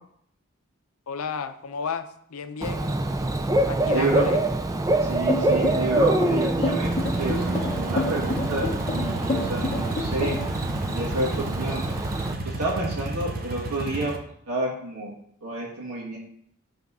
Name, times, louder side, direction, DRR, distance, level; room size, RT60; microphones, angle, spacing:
voice 1, 1.1-2.9 3.7-4.4, left 5 dB, 80° left, 10 dB, 0.5 m, -32 dB
Bird / Cricket, 2.6-12.3, right 1 dB, 15° right, 0.3 m, -25 dB
voice 2, 3.9-4.3 5.0-10.4 10.9-11.8 12.4-14.2 14.5-15.1 15.4-16.2, right 2 dB, 85° right, -5 dB, 1.5 m, -29 dB
sound 1, 5.3-10.6, left 3 dB, 30° left, 0.6 m, -28 dB
sound 2, 6.8-14.2, right 2 dB, 40° right, 0.7 m, -33 dB
8.3 x 3.4 x 5.5 m, 0.69 s
head